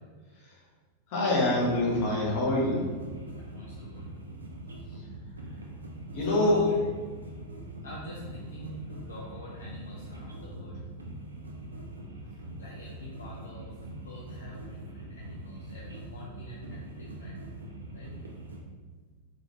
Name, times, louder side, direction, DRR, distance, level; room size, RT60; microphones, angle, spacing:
voice 1, 1.1-2.8 6.1-6.6, left 1 dB, 45° left, -4 dB, 0.9 m, -25 dB
sound 1, 1.4-18.6, right 1 dB, 75° right, 0.3 m, -43 dB
voice 2, 3.4-4.1 6.2-6.8 7.3-7.5 7.8-10.9 12.6-13.7 14.0-17.5 17.9-18.1, left 1 dB, 65° left, -5 dB, 0.4 m, -44 dB
2.5 x 2.2 x 3.1 m, 1.5 s
figure-of-eight pair, 90°, 0 cm